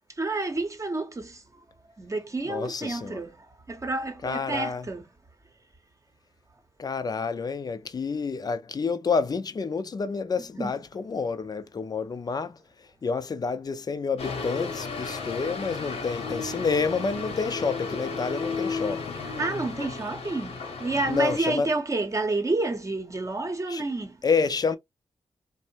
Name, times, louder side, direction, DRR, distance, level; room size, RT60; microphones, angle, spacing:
voice 1, 0.2-1.4 1.8-5.1 10.6-10.7 19.4-24.2, right 2 dB, 30° right, 0.8 m, -29 dB
voice 2, 2.5-3.2 4.2-4.9 6.8-12.6 13.0-19.1 21.1-21.7 23.7-23.8 24.2-24.8, left 5 dB, 40° left, 0.5 m, -29 dB
sound 1, 14.2-21.4, left 4 dB, 85° left, 0.8 m, -34 dB
2.5 x 2.0 x 2.8 m
cardioid pair, 60°, 10 cm